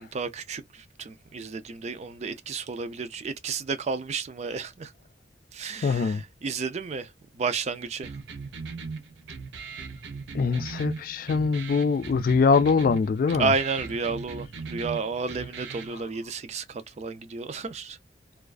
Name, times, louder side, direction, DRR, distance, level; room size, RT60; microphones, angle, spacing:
voice 1, 0.0-4.9 5.5-7.1 7.4-8.1 13.4-18.0, right 4 dB, 40° right, 0.4 m, -31 dB
voice 2, 5.8-6.2 10.3-13.5, left 5 dB, 50° left, 0.3 m, -23 dB
sound 1, 8.0-16.0, right 4 dB, 80° right, 0.6 m, -39 dB
2.4 x 2.2 x 2.3 m
head